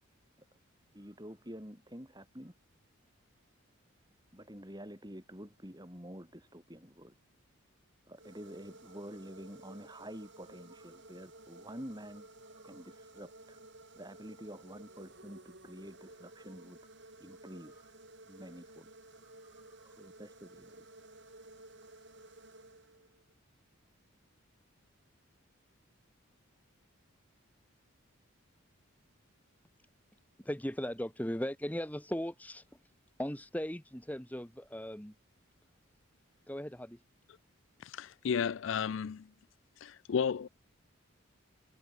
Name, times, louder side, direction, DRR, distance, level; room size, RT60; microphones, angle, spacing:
voice 1, 0.9-2.5 4.3-7.2 8.1-13.6 14.0-16.8 17.2-17.9 18.3-18.9 19.2-20.8, equal, 20° right, 5.5 m, -49 dB
sound 1, 8.1-23.3, right 2 dB, 55° right, 7.8 m, -55 dB
voice 2, 30.4-32.6 33.2-35.1 36.5-37.0, equal, 5° left, 1.8 m, -38 dB
voice 3, 37.8-39.3 39.8-40.5, left 7 dB, 60° left, 0.4 m, -33 dB
head